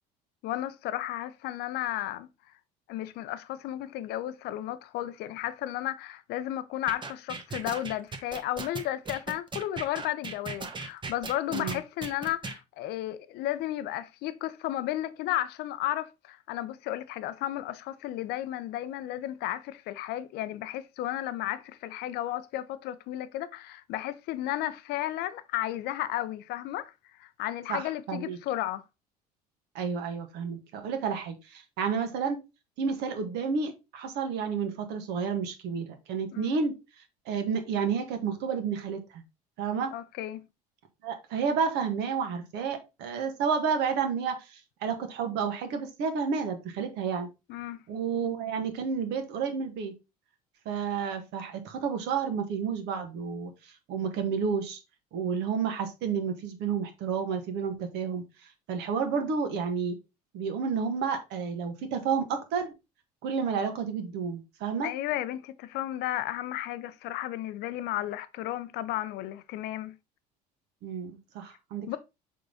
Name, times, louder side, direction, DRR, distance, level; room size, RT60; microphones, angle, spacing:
voice 1, 0.4-2.3 2.9-26.9 27.2-28.8 36.3-36.5 39.9-40.4 47.5-47.8 64.8-69.9 71.9-72.0, left 14 dB, 55° left, 0.7 m, -33 dB
sound 1, 6.9-12.6, right 4 dB, 25° right, 1.2 m, -37 dB
voice 2, 27.7-28.4 29.7-32.4 32.8-36.7 37.2-39.2 39.6-39.9 41.0-47.3 47.9-49.9 50.6-54.8 55.1-58.2 58.7-60.0 60.3-62.7 63.2-64.9 70.8-71.9, right 6 dB, 55° right, 1.5 m, -31 dB
6.4 x 3.8 x 3.9 m
figure-of-eight pair, 60°, 20 cm